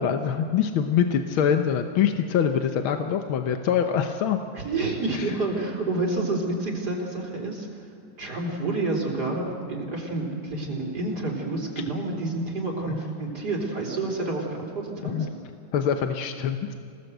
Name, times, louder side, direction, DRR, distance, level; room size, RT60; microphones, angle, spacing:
voice 1, 0.0-4.4 5.1-5.3 12.9-13.0 15.0-15.3 15.7-16.7, left 8 dB, 85° left, 6 dB, 1.9 m, -24 dB
voice 2, 4.5-7.9 8.2-15.3, right 2 dB, 50° right, -1 dB, 4.3 m, -29 dB
28.0 x 18.5 x 8.0 m, 2.5 s
omnidirectional pair, 2.2 m